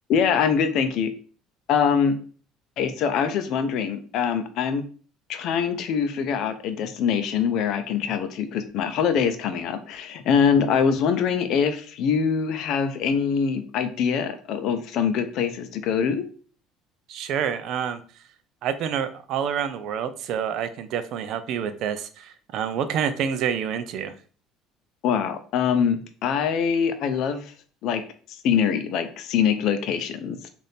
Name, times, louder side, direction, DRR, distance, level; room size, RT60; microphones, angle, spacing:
voice 1, 0.1-1.1 1.7-2.2 2.8-4.8 5.3-16.2 25.0-27.5 27.8-28.0 28.3-30.5, left 7 dB, 60° left, 9 dB, 0.5 m, -24 dB
voice 2, 17.1-18.0 18.6-24.1, right 8 dB, 55° right, 11 dB, 0.4 m, -28 dB
3.4 x 2.6 x 4.1 m, 0.42 s
cardioid pair, 145°, 0 cm